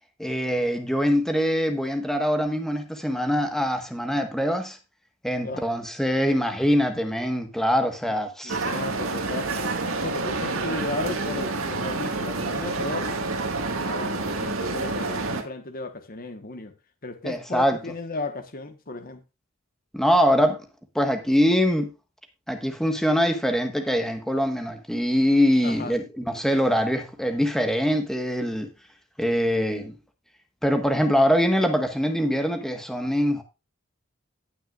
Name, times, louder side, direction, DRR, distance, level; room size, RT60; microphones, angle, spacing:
voice 1, 0.2-4.8 5.2-8.6 17.2-17.8 19.9-20.6 20.9-21.9 22.5-28.7 29.2-29.9 30.6-33.4, equal, ahead, 1.4 m, -23 dB
voice 2, 8.4-9.5 10.0-16.7 17.0-19.2 25.6-26.0, left 3 dB, 45° left, 1.3 m, -35 dB
sound 1, 8.5-15.4, right 3 dB, 85° right, 1.8 m, -28 dB
17.5 x 6.2 x 2.5 m
head